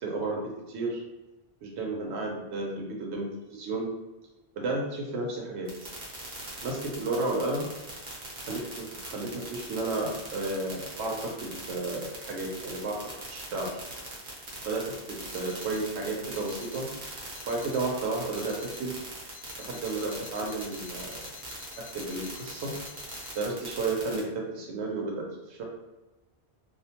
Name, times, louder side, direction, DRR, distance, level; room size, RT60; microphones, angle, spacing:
voice 1, 0.0-0.4 0.7-1.0 1.6-3.9 4.6-5.9 6.6-7.7 8.5-13.0 13.3-13.7 14.6-16.9 17.4-18.9 19.6-21.3 21.8-22.7 23.3-25.6, right 2 dB, 90° right, -1 dB, 0.9 m, -32 dB
sound 1, 5.7-24.2, right 2 dB, 55° right, 0.8 m, -41 dB
Alarm, 15.3-15.9 16.3-16.9 17.3-17.9 18.3-18.9 19.3-23.5, left 9 dB, 80° left, 0.9 m, -50 dB
2.4 x 2.1 x 2.8 m, 1.1 s
omnidirectional pair, 1.1 m